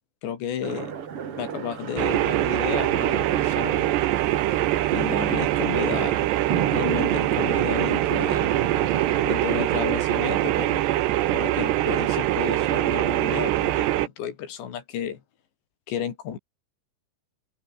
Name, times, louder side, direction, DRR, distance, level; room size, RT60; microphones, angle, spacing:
voice 1, 0.2-1.0 1.4-4.3 4.9-6.2 6.7-8.7 9.3-10.9 11.3-15.2 15.9-16.4, left 9 dB, 90° left, 5.3 m, -32 dB
sound 1, 0.6-9.3, right 7 dB, 45° right, 2.2 m, -34 dB
sound 2, 2.0-14.1, right 14 dB, 80° right, 3.4 m, -23 dB
open air
omnidirectional pair, 4.9 m